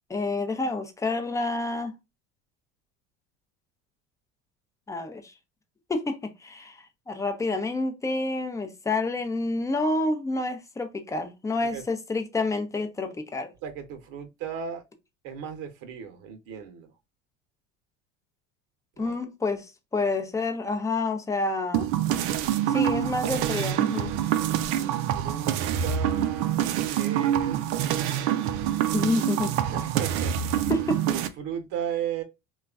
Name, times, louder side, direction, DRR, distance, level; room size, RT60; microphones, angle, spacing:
voice 1, 0.1-2.0 4.9-5.3 5.9-6.8 7.1-13.5 19.0-21.9 22.7-24.2 28.9-29.6 30.7-31.1, left 2 dB, 10° left, 0.5 m, -28 dB
voice 2, 13.6-14.8 15.2-16.9 19.0-19.2 22.6-22.9 24.6-26.6 27.0-27.7 29.6-30.6 31.1-32.2, right 8 dB, 60° right, 0.9 m, -36 dB
sound 1, 21.7-31.3, right 10 dB, 75° right, 0.5 m, -26 dB
3.0 x 2.3 x 2.3 m
supercardioid pair, 100°, 36 cm